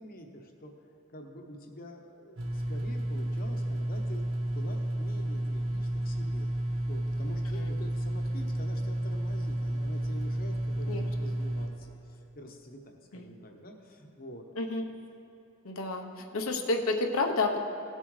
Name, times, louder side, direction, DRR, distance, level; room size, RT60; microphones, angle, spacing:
voice 1, 0.0-6.5 6.9-14.4, equal, 45° left, 3 dB, 0.9 m, -47 dB
sound 1, 2.4-11.7, right 1 dB, 75° right, 1.3 m, -31 dB
voice 2, 15.6-17.6, left 3 dB, 85° left, 3 dB, 0.9 m, -30 dB
17.5 x 7.5 x 3.2 m, 2.8 s
head